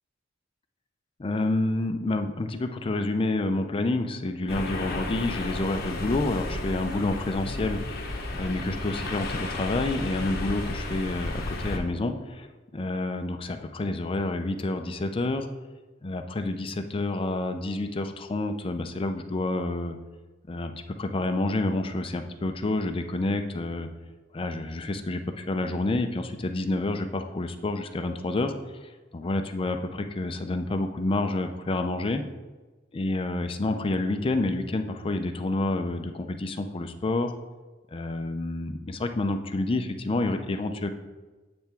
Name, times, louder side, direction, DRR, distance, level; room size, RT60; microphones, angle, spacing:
voice 1, 1.2-7.8 8.3-15.5 16.0-20.0 20.5-23.9 24.3-28.5 28.8-32.2 32.9-37.3 37.9-40.9, left 2 dB, 25° left, 7 dB, 0.4 m, -29 dB
sound 1, 4.5-11.8, left 2 dB, 50° left, 0.8 m, -33 dB
8.4 x 3.4 x 4.3 m, 1.2 s
head